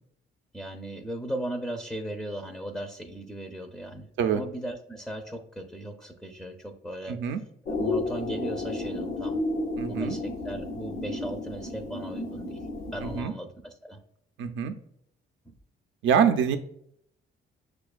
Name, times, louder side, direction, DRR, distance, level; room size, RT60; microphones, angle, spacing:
voice 1, 0.5-7.2 7.6-9.4 9.9-12.6 12.9-14.0 15.5-15.6, right 1 dB, ahead, 3 dB, 0.4 m, -37 dB
voice 2, 7.1-7.4 9.8-10.2 13.0-13.3 14.4-14.7 16.0-16.6, right 7 dB, 75° right, 7 dB, 0.4 m, -25 dB
sound 1, 7.7-13.2, left 2 dB, 80° left, 0.7 m, -32 dB
6.2 x 2.2 x 2.3 m, 0.69 s
cardioid pair, 90°, 20 cm